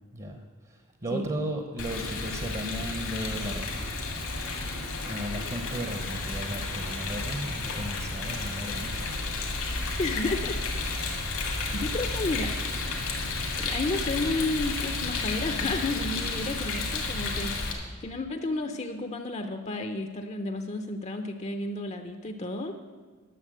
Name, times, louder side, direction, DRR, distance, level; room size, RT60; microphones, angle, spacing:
voice 1, 0.1-3.9 5.0-9.1, right 1 dB, 30° right, 5 dB, 0.9 m, -35 dB
Rain, 1.8-17.7, left 3 dB, 90° left, 2.3 m, -32 dB
voice 2, 10.0-11.2 11.7-12.5 13.6-22.7, left 2 dB, 30° left, 6 dB, 0.6 m, -32 dB
11.0 x 7.0 x 7.7 m, 1.4 s
head